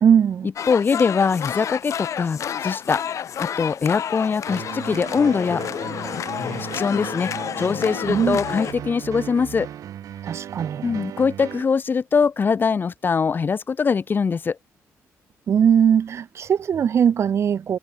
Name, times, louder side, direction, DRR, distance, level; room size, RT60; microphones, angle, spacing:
voice 1, 0.0-0.5 8.1-8.4 10.2-11.1 15.5-17.8, right 8 dB, 50° right, 0.5 m, -20 dB
sound 1, 0.6-8.7, left 9 dB, 60° left, 1.3 m, -30 dB
voice 2, 0.7-3.0 3.4-5.6 6.4-7.3 7.6-9.7 10.8-14.6, left 5 dB, 35° left, 0.5 m, -22 dB
sound 2, 4.5-11.6, right 11 dB, 75° right, 2.3 m, -36 dB
cardioid pair, 95°, 6 cm